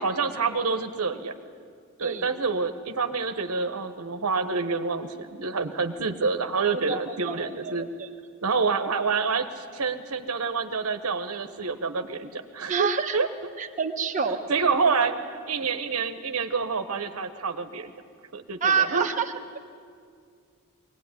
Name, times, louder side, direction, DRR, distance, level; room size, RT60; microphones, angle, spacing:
voice 1, 0.0-1.3 2.0-7.9 8.4-12.9 13.1-13.3 14.5-17.9 18.3-19.1, right 4 dB, 80° right, 8 dB, 1.1 m, -27 dB
voice 2, 6.7-7.4 7.6-7.8 12.7-13.2 13.6-14.4 18.6-19.6, right 6 dB, 35° right, 2 dB, 1.2 m, -27 dB
22.5 x 17.5 x 9.8 m, 2.2 s
head